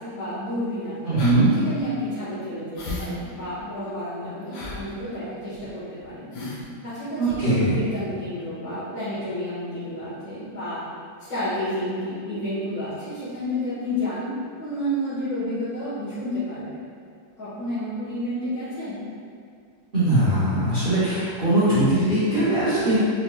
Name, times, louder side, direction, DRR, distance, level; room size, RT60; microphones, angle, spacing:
voice 1, 0.0-1.2 1.6-6.3 6.8-10.8 11.3-14.3 14.6-16.8 17.4-19.1, left 1 dB, 55° left, -15 dB, 1.7 m, -30 dB
voice 2, 1.0-1.5 7.2-7.8 19.9-23.0, right 1 dB, 40° right, -12 dB, 0.8 m, -20 dB
sound 1, 1.2-1.4 1.8-1.9 2.7-3.1 3.4-3.5 4.5-4.8 5.5-5.7 6.0-6.1 6.3-6.6 7.3-7.4, left 2 dB, 75° left, 1.3 m, -34 dB
4.3 x 3.1 x 2.3 m, 2.3 s
omnidirectional pair, 1.9 m